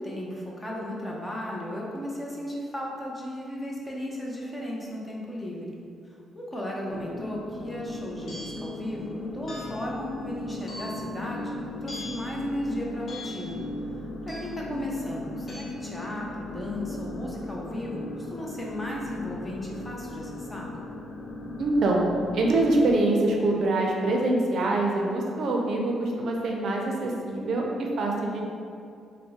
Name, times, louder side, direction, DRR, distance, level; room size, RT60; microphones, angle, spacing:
voice 1, 0.0-5.8 6.3-13.6 14.3-20.7, equal, 15° left, -3 dB, 0.6 m, -35 dB
sound 1, 6.9-22.9, left 2 dB, 70° left, 0.4 m, -37 dB
sound 2, 8.3-8.7 9.5-9.9 10.7-11.1 11.9-12.3 13.1-13.5 14.3-14.7 15.5-15.6, left 1 dB, 45° left, 1.0 m, -41 dB
voice 2, 21.6-22.0 22.3-28.4, right 2 dB, 60° right, 0 dB, 0.5 m, -25 dB
3.4 x 2.1 x 4.0 m, 2.4 s
cardioid pair, 110°, 0 cm